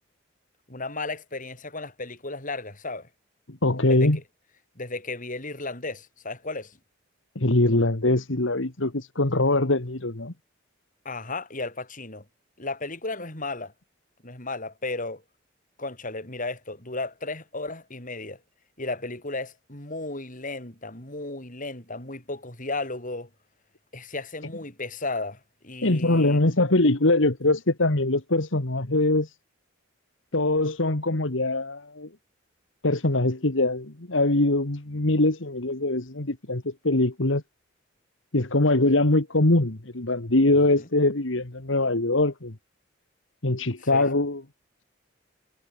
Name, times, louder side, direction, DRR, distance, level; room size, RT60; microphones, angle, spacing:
voice 1, 0.7-3.1 3.9-4.2 4.7-6.8 11.0-12.2 12.6-13.7 14.2-15.2 15.8-18.4 18.8-23.3 23.9-26.4 40.8-40.9 43.8-44.1, left 3 dB, 40° left, 6.3 m, -34 dB
voice 2, 3.5-4.2 7.4-10.3 25.8-29.3 30.3-32.1 32.8-37.4 38.3-42.5 43.4-44.4, left 2 dB, 70° left, 2.0 m, -23 dB
head